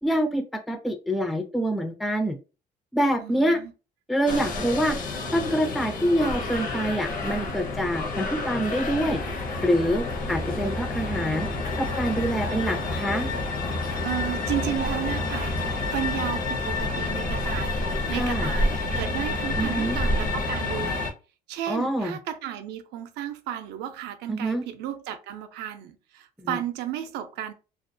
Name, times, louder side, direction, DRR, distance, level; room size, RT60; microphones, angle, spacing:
voice 1, 0.0-2.4 2.9-3.6 4.1-9.2 9.6-11.5 11.8-13.3 18.1-18.5 19.6-20.0 21.7-22.2 24.3-24.6 26.4-26.6, equal, ahead, 0.3 m, -26 dB
voice 2, 3.2-3.7 14.0-15.6 15.9-17.7 18.1-21.1 21.5-27.5, right 11 dB, 85° right, 0.4 m, -33 dB
sound 1, 4.3-21.1, left 2 dB, 55° left, 0.7 m, -29 dB
2.3 x 2.1 x 2.5 m
cardioid pair, 110°, 17 cm